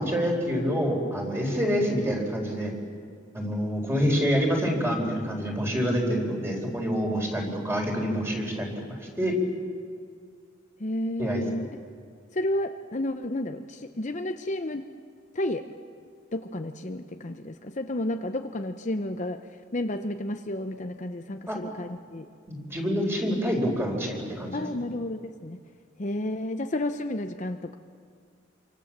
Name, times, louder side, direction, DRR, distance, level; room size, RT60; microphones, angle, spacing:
voice 1, 0.0-2.7 3.3-9.4 11.2-11.4 21.5-21.6 22.5-24.7, equal, 15° right, 1 dB, 4.3 m, -27 dB
voice 2, 10.8-11.7 12.3-14.9 15.3-15.7 16.3-19.4 19.7-22.2 24.5-25.6 26.0-27.8, left 1 dB, 40° left, 6 dB, 0.8 m, -31 dB
27.5 x 24.5 x 7.4 m, 2.1 s
head